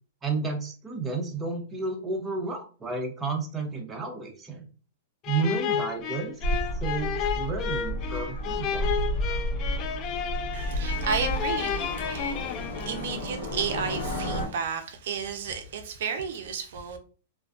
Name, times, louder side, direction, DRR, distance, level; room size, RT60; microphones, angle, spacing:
voice 1, 0.2-4.6 5.3-6.3 6.7-8.9, right 4 dB, 15° right, 0.6 m, -31 dB
sound 1, 5.2-13.3, left 8 dB, 35° left, 0.3 m, -32 dB
sound 2, 6.4-14.5, equal, 55° left, 1.3 m, -31 dB
voice 2, 10.5-17.0, right 6 dB, 70° right, 0.4 m, -33 dB
2.5 x 2.2 x 2.3 m
hypercardioid pair, 135°, 0 cm